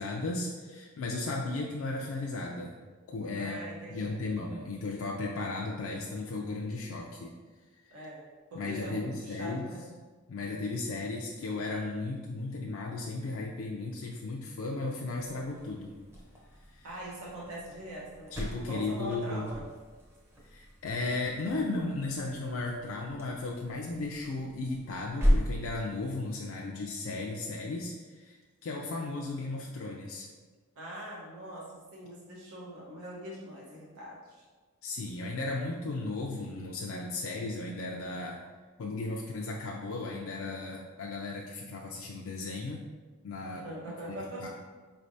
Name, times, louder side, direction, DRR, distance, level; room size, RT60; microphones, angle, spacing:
voice 1, 0.0-2.8 3.1-3.6 3.9-7.3 8.6-9.6 10.3-16.0 16.7-16.9 18.3-19.5 20.4-30.3 34.8-38.4 38.8-42.9 43.2-43.7 44.1-44.5, left 3 dB, 70° left, -1 dB, 0.4 m, -35 dB
voice 2, 3.3-4.2 7.9-8.2 8.5-9.9 16.8-18.4 18.7-19.6 30.8-34.4 43.6-44.4, right 1 dB, 85° right, -5 dB, 1.0 m, -42 dB
sound 1, 15.1-26.2, equal, 10° right, 0.6 m, -36 dB
5.0 x 3.2 x 2.6 m, 1.4 s
head